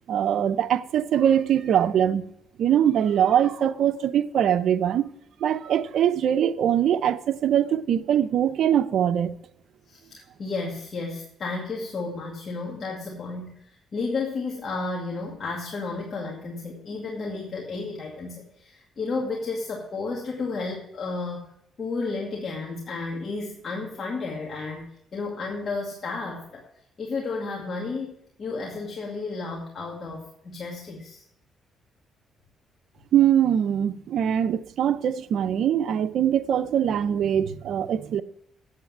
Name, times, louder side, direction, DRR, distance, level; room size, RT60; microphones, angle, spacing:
voice 1, 0.1-2.2 2.6-5.1 5.4-9.4 33.1-38.2, right 9 dB, 70° right, 0.7 m, -22 dB
voice 2, 9.9-21.5 21.8-26.6 27.0-31.2, left 3 dB, 50° left, 2.2 m, -32 dB
8.5 x 8.1 x 7.5 m
cardioid pair, 90°, 0 cm